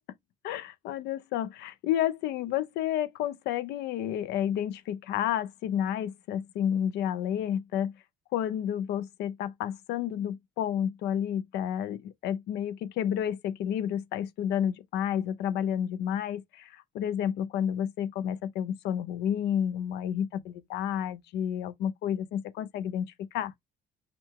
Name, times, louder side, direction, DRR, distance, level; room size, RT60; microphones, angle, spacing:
voice 1, 0.4-7.9 8.3-23.5, left 10 dB, 85° left, 0.7 m, -30 dB
5.9 x 2.3 x 3.6 m
cardioid pair, 110°, 17 cm